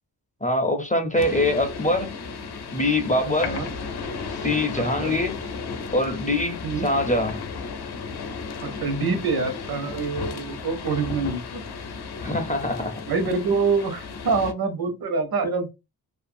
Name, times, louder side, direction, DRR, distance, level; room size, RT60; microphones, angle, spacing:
voice 1, 0.4-2.1 2.7-3.6 4.4-5.4 5.9-7.4 12.2-12.9, left 1 dB, 20° left, 0.4 m, -23 dB
sound 1, 1.2-14.5, left 5 dB, 80° left, 0.6 m, -34 dB
voice 2, 4.7-5.1 6.6-6.9 8.6-11.7 13.1-15.7, right 4 dB, 70° right, 0.9 m, -26 dB
2.6 x 2.4 x 2.5 m
wide cardioid pair, 120°, 38 cm